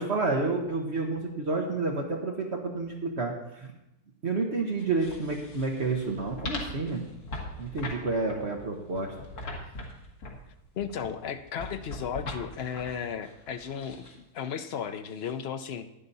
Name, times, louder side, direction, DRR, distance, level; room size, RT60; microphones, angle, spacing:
voice 1, 0.0-3.7 4.2-7.0 7.6-9.1, right 3 dB, 45° right, 1 dB, 1.4 m, -30 dB
sound 1, 4.8-14.1 15.1-15.3, left 1 dB, 75° left, 2.3 m, -41 dB
voice 2, 10.8-14.1 14.3-15.9, left 7 dB, 55° left, 8 dB, 0.8 m, -34 dB
11.0 x 10.5 x 4.1 m, 0.87 s
omnidirectional pair, 1.6 m